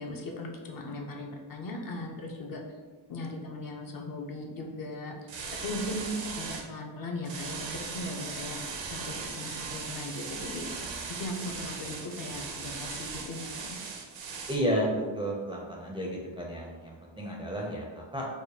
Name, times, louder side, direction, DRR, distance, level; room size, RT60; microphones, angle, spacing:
voice 1, 0.0-2.6 3.1-5.2 5.6-10.6 11.2-13.8, left 1 dB, 45° left, 0 dB, 0.5 m, -38 dB
sound 1, 5.3-6.6 7.2-14.6, right 5 dB, 65° right, 0.6 m, -38 dB
voice 2, 14.5-18.3, equal, 10° right, -3 dB, 0.4 m, -32 dB
4.8 x 2.1 x 2.7 m, 1.3 s
cardioid pair, 110°, 49 cm